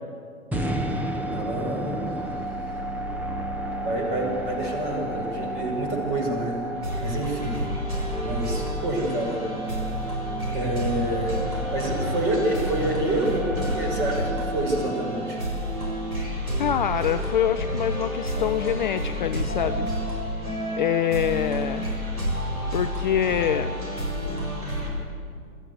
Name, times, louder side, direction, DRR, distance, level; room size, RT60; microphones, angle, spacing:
sound 1, 0.5-16.7, right 1 dB, 5° right, 0.8 m, -33 dB
voice 1, 1.3-2.0 3.8-6.6 7.0-7.6 8.2-9.4 10.5-15.5 24.8-25.0, right 1 dB, 30° right, 1 dB, 5.8 m, -28 dB
sound 2, 6.7-24.9, equal, 85° right, 7.3 m, -29 dB
voice 2, 16.6-19.9 20.8-21.9 22.7-23.9, left 10 dB, 35° left, 9 dB, 0.5 m, -25 dB
22.5 x 14.5 x 8.3 m, 2.2 s
figure-of-eight pair, 120°, 43 cm